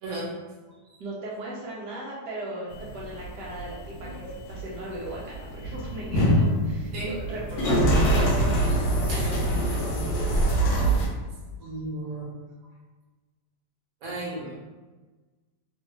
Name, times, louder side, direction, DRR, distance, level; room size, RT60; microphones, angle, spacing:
voice 1, 1.0-8.7, right 2 dB, 80° right, -5 dB, 0.9 m, -37 dB
sound 1, 2.7-11.1, right 1 dB, 70° left, 1.2 m, -25 dB
voice 2, 11.6-12.3 14.0-14.6, right 2 dB, 55° right, -4 dB, 1.0 m, -35 dB
3.4 x 2.3 x 3.0 m, 1.3 s
omnidirectional pair, 2.4 m